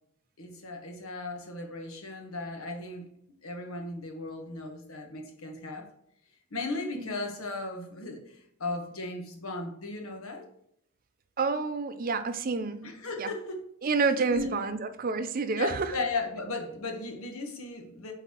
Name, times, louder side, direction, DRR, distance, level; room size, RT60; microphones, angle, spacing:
voice 1, 0.4-3.1 3.4-5.9 6.5-10.4 12.8-13.6 14.1-14.5 15.5-18.1, left 3 dB, 80° left, 3 dB, 1.2 m, -36 dB
voice 2, 11.4-12.8 13.2-13.3 13.8-15.9, right 4 dB, 40° right, 10 dB, 0.5 m, -28 dB
8.0 x 4.0 x 3.0 m, 0.71 s
head